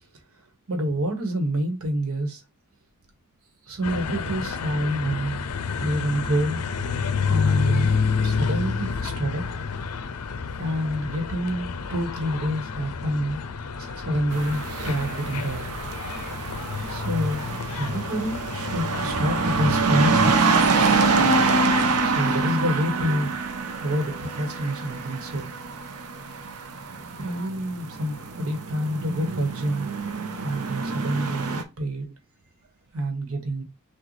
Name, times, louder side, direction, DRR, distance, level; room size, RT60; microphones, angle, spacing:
voice 1, 0.7-2.4 3.7-5.4 5.8-6.6 7.3-7.9 8.2-9.4 10.6-13.4 14.0-15.7 16.9-20.4 22.0-23.4 23.8-25.5 26.8-29.9 30.4-32.1 32.9-33.6, equal, 65° right, 1.2 m, -27 dB
sound 1, 3.8-20.3, left 5 dB, 85° left, 0.5 m, -29 dB
voice 2, 13.6-14.3 15.0-15.2 18.9-19.6 23.7-23.9, right 2 dB, 40° right, 0.4 m, -44 dB
sound 2, 14.3-31.6, right 4 dB, 85° right, 0.7 m, -26 dB
6.2 x 2.3 x 3.1 m
head